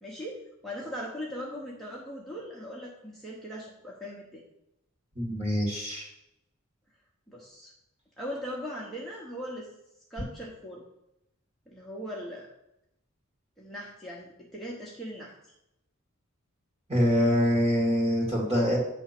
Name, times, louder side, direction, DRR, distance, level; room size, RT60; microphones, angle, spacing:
voice 1, 0.0-4.4 7.3-7.7 8.2-9.7 10.1-10.8 11.7-12.5 13.6-15.3, equal, ahead, -5 dB, 1.0 m, -39 dB
voice 2, 5.2-6.1 16.9-18.8, equal, 30° right, -1 dB, 2.2 m, -25 dB
9.1 x 3.5 x 5.9 m, 0.84 s
head